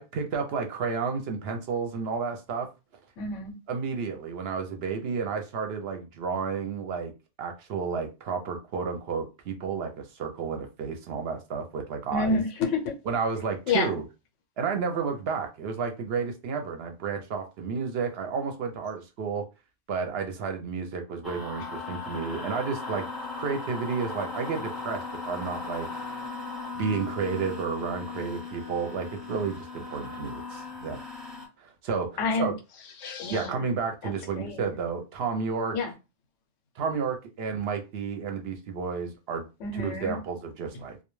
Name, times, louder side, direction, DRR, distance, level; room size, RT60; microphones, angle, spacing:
voice 1, 0.0-2.7 3.7-7.1 7.4-12.4 13.1-14.0 14.6-19.4 19.9-25.9 26.7-31.0 31.6-32.1 32.3-32.5 33.3-35.8 36.8-39.4 39.7-41.0, right 5 dB, 65° right, 0.7 m, -31 dB
voice 2, 3.2-3.5 12.1-13.0 13.7-13.9 32.2-32.5 33.0-33.6 34.0-34.7 35.7-35.9 39.6-40.2, left 4 dB, 90° left, 1.0 m, -29 dB
sound 1, 21.2-31.5, left 4 dB, ahead, 0.6 m, -37 dB
2.2 x 2.2 x 3.0 m
omnidirectional pair, 1.2 m